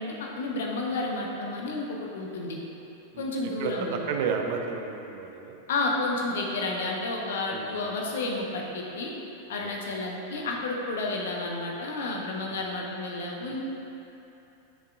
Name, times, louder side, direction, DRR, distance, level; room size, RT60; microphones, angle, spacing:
voice 1, 0.0-2.6 3.2-3.9 5.7-9.1 9.5-13.6, left 2 dB, 60° left, -1 dB, 1.0 m, -31 dB
voice 2, 3.1-5.6 7.5-7.7, right 6 dB, 50° right, 3 dB, 0.6 m, -32 dB
9.6 x 6.7 x 2.5 m, 2.9 s
figure-of-eight pair, 90°, 0 cm